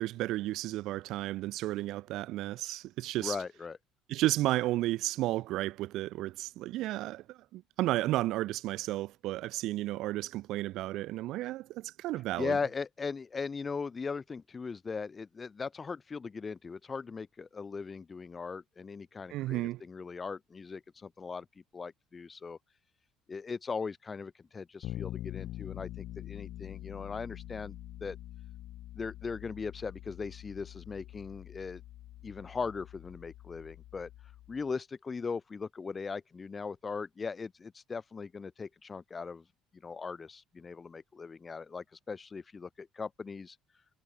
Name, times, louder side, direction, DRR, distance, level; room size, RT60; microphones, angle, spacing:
voice 1, 0.0-3.4 4.1-12.6 19.3-19.8, right 16 dB, 65° right, 0.5 m, -33 dB
voice 2, 3.2-3.8 12.4-22.6 23.3-28.2 28.9-31.8 32.2-34.1 34.5-39.4 39.7-43.6, left 5 dB, 20° left, 1.0 m, -39 dB
Bass guitar, 24.8-34.6, left 14 dB, 60° left, 1.0 m, -45 dB
cardioid pair, 135°, 0 cm